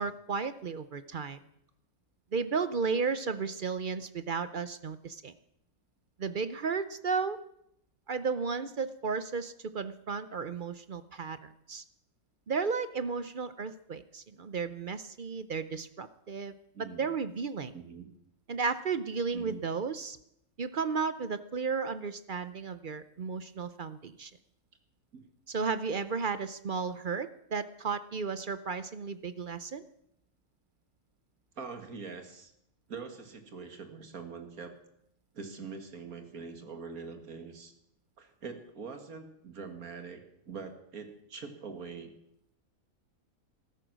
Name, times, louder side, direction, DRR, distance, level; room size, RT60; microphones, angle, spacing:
voice 1, 0.0-1.4 2.3-5.3 6.2-7.4 8.1-11.8 12.5-16.5 17.0-17.7 18.5-20.2 20.6-24.3 25.5-29.8, right 5 dB, 50° right, 13 dB, 0.6 m, -34 dB
voice 2, 16.7-17.1 17.7-18.1 19.3-19.6 25.1-25.2 31.6-32.5 32.9-34.8 35.3-37.7 38.2-42.1, right 5 dB, 75° right, 6 dB, 2.3 m, -43 dB
14.5 x 13.0 x 6.2 m, 0.76 s
omnidirectional pair, 1.5 m